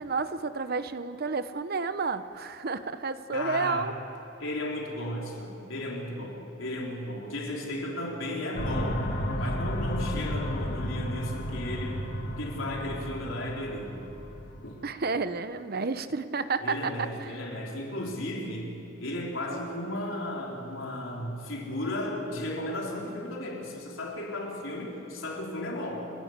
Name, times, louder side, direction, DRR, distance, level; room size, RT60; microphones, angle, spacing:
voice 1, 0.0-3.9 14.8-17.3, right 4 dB, 50° right, 12 dB, 0.8 m, -31 dB
voice 2, 3.3-3.9 4.4-9.0 9.4-14.0 14.6-14.8 16.6-26.1, left 1 dB, 80° left, -2 dB, 4.1 m, -35 dB
sound 1, 8.6-14.9, equal, 55° left, 2.0 m, -33 dB
29.5 x 12.5 x 8.2 m, 2.9 s
head